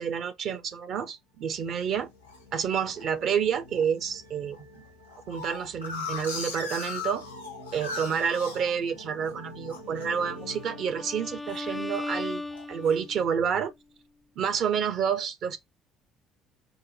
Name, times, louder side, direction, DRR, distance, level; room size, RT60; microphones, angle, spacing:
voice 1, 0.0-2.1 2.5-4.6 5.3-7.3 7.7-12.4 12.7-13.7 14.4-15.6, right 7 dB, 50° right, 0.6 m, -29 dB
sound 1, 1.4-12.1, left 1 dB, 85° right, 0.8 m, -48 dB
sound 2, 1.7-2.4 3.0-3.4 3.8-3.9 4.1-4.2 4.5-9.3 9.7-10.1 10.4-10.7 11.1-12.0 12.5-13.0, left 4 dB, 85° left, 0.8 m, -38 dB
Bowed string instrument, 10.2-13.3, left 2 dB, 10° left, 0.3 m, -37 dB
4.7 x 2.2 x 3.9 m
figure-of-eight pair, 50°, 0 cm